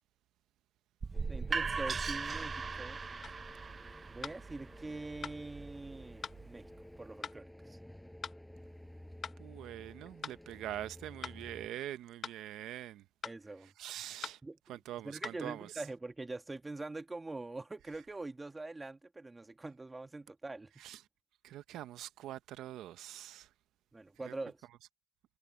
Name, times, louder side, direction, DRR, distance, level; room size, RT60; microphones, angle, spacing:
sound 1, 1.0-6.8, right 5 dB, 35° right, 0.6 m, -39 dB
sound 2, 1.1-11.7, left 1 dB, 5° left, 5.9 m, -53 dB
voice 1, 1.3-3.0 4.1-6.7 7.0-7.8 13.2-13.7 14.4-14.8 15.0-20.7 23.9-24.7, right 2 dB, 20° right, 1.7 m, -44 dB
sound 3, 3.2-3.4 4.2-4.4 5.2-5.4 6.2-6.4 7.2-7.4 8.2-8.4 9.2-9.4 10.2-10.4 11.2-11.4 12.2-12.4 13.2-13.4 14.2-14.4 15.2-15.4, left 7 dB, 50° left, 0.9 m, -42 dB
voice 2, 9.4-13.0 13.6-14.4 14.7-15.7 20.8-21.0 21.4-23.5 24.2-24.3, right 13 dB, 85° right, 0.6 m, -44 dB
cardioid pair, 90°, 0 cm